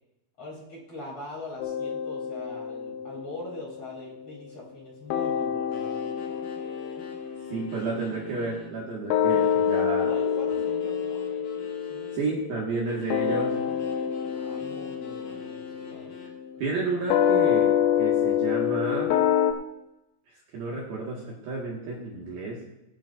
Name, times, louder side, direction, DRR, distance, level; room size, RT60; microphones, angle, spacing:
voice 1, 0.4-5.9 9.6-11.3 11.9-12.6 14.3-16.1 16.5-16.9, left 1 dB, 30° left, -5 dB, 3.9 m, -42 dB
sound 1, 1.6-4.8 5.1-19.5, left 9 dB, 80° left, 2.4 m, -28 dB
sound 2, 5.7-8.8 9.3-12.2 12.9-16.4, left 2 dB, 55° left, 2.9 m, -48 dB
voice 2, 7.5-10.1 12.1-13.5 16.6-19.1 20.5-22.6, right 3 dB, 60° right, -4 dB, 3.0 m, -31 dB
21.0 x 10.5 x 2.5 m, 0.91 s
omnidirectional pair, 5.7 m